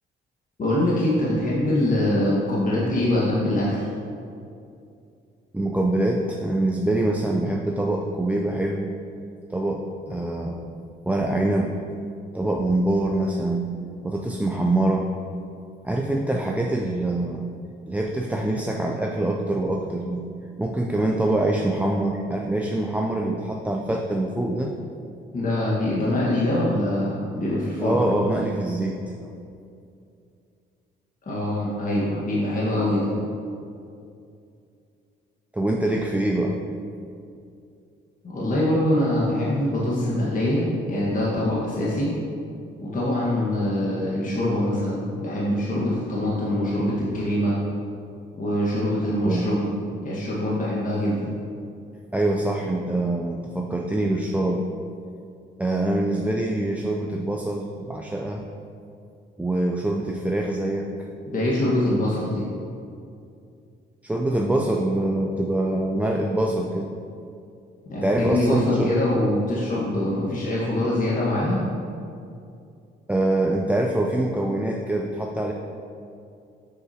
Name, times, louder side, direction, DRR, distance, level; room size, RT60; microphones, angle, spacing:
voice 1, 0.6-3.8 25.3-28.0 31.3-33.1 38.2-42.1 42.8-47.6 48.4-49.7 50.0-51.3 61.3-62.5 67.9-71.6, left 1 dB, 40° left, -7 dB, 1.4 m, -24 dB
voice 2, 5.5-8.9 9.5-10.7 11.1-11.8 12.3-13.7 14.0-15.1 15.8-17.5 17.9-20.2 20.6-24.8 27.8-29.0 35.5-36.6 49.1-49.5 52.1-54.7 55.6-58.5 59.4-61.1 64.0-66.9 67.9-68.9 73.1-75.5, right 1 dB, 5° right, 0 dB, 0.4 m, -24 dB
7.6 x 6.4 x 2.8 m, 2.5 s
cardioid pair, 90°, 20 cm